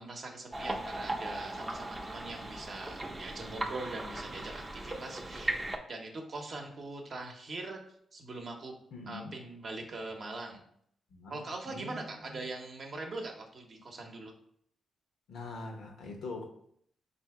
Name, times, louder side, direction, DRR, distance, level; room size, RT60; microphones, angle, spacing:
voice 1, 0.0-5.5 5.9-7.8 8.1-8.7 9.1-10.6 11.3-14.3, right 2 dB, 55° right, 1 dB, 0.7 m, -42 dB
sound 1, 0.5-5.8, right 1 dB, 15° right, 0.5 m, -38 dB
voice 2, 8.9-9.3 11.1-12.4 15.3-16.5, left 3 dB, 85° left, 2 dB, 0.9 m, -43 dB
3.4 x 2.7 x 4.6 m, 0.66 s
cardioid pair, 85°, 0 cm